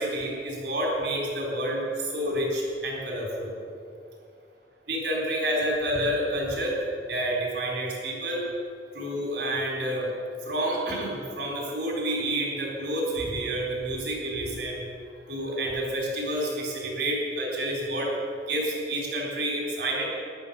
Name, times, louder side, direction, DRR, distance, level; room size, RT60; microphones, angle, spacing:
voice 1, 0.0-3.5 4.9-6.8 7.1-8.4 8.9-10.1 10.4-14.8 15.3-18.1 18.5-20.0, right 1 dB, 65° right, -2 dB, 3.8 m, -29 dB
14.5 x 11.5 x 5.5 m, 2.3 s
head